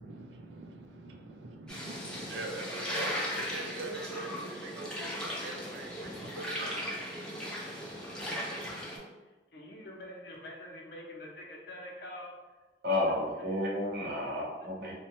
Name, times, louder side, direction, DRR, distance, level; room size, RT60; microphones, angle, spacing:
voice 1, 0.0-6.9, right 3 dB, 80° right, 3 dB, 0.4 m, -43 dB
sound 1, 1.7-9.0, equal, 5° left, 0.6 m, -37 dB
voice 2, 9.5-12.4 14.0-14.2, left 1 dB, 65° left, -1 dB, 0.6 m, -45 dB
voice 3, 12.8-14.9, left 1 dB, 60° right, -4 dB, 0.8 m, -31 dB
2.8 x 2.1 x 2.9 m, 1.2 s
head